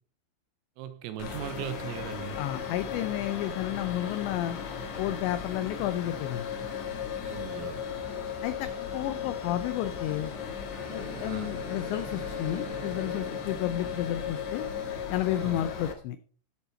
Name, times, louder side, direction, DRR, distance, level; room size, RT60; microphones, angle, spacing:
voice 1, 0.8-2.4 7.2-7.8 11.2-11.6 15.4-15.7, right 10 dB, 85° right, 3.9 m, -39 dB
sound 1, 1.2-15.9, left 7 dB, 65° left, 1.8 m, -36 dB
voice 2, 2.4-4.6 5.0-6.5 8.4-8.7 8.9-10.3 10.9-14.7 15.1-16.2, left 13 dB, 90° left, 2.5 m, -31 dB
Bowed string instrument, 10.7-14.8, right 7 dB, 40° right, 1.0 m, -46 dB
15.0 x 7.0 x 4.3 m
omnidirectional pair, 5.9 m